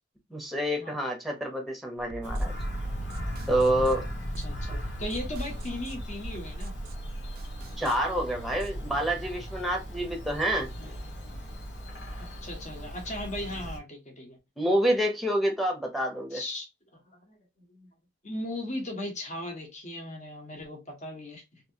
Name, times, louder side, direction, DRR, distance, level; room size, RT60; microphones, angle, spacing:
voice 1, 0.3-2.5 3.5-4.1 7.8-10.7 14.6-16.4, right 1 dB, ahead, 0.8 m, -27 dB
sound 1, 2.0-8.9, right 2 dB, 55° right, 0.3 m, -42 dB
Bird vocalization bird call bird song, 2.2-13.8, equal, 85° left, 1.2 m, -37 dB
voice 2, 4.4-6.7 12.2-14.4 16.3-16.7 17.1-17.9 18.2-21.6, left 1 dB, 40° left, 1.1 m, -37 dB
3.1 x 2.8 x 2.7 m
head